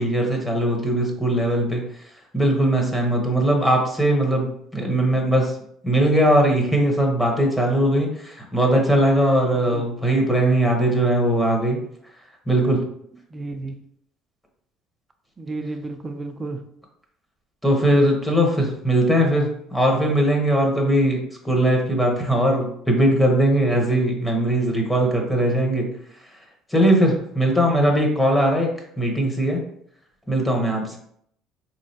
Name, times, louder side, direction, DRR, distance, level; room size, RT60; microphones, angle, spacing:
voice 1, 0.0-1.8 2.3-5.5 5.8-11.8 12.5-12.8 17.6-25.9 26.7-28.7 29.0-29.6 30.3-31.0, right 1 dB, 10° left, 1 dB, 0.9 m, -20 dB
voice 2, 13.3-13.7 15.4-16.6, right 2 dB, 25° right, 6 dB, 0.5 m, -32 dB
3.7 x 3.1 x 2.7 m, 0.70 s
supercardioid pair, 95°, 0 cm